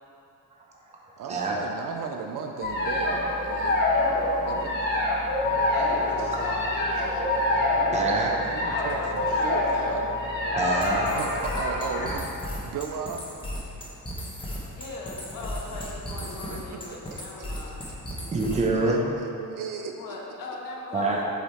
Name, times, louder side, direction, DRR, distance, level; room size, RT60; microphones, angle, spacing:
voice 1, 1.2-3.9 4.4-5.1 8.5-10.1 11.1-12.3 12.6-13.3 16.5-16.8 17.1-17.7 18.9-19.9, right 6 dB, 65° right, 4 dB, 0.5 m, -36 dB
sound 1, 2.6-12.2, left 2 dB, 30° left, 1.2 m, -26 dB
sound 2, 5.4-11.6, left 4 dB, 55° left, 0.6 m, -42 dB
voice 2, 5.7-7.5 8.6-10.0 10.7-10.8 11.1-11.7 13.9-14.3 14.7-17.8 20.0-21.2, left 3 dB, 75° left, -2 dB, 1.4 m, -38 dB
voice 3, 7.9-8.5 10.5-11.1 18.3-19.1 20.9-21.2, right 2 dB, 20° right, -2 dB, 0.7 m, -25 dB
sound 3, 10.8-18.8, equal, 15° left, 0.9 m, -36 dB
7.9 x 5.0 x 4.2 m, 2.7 s
wide cardioid pair, 175°, 34 cm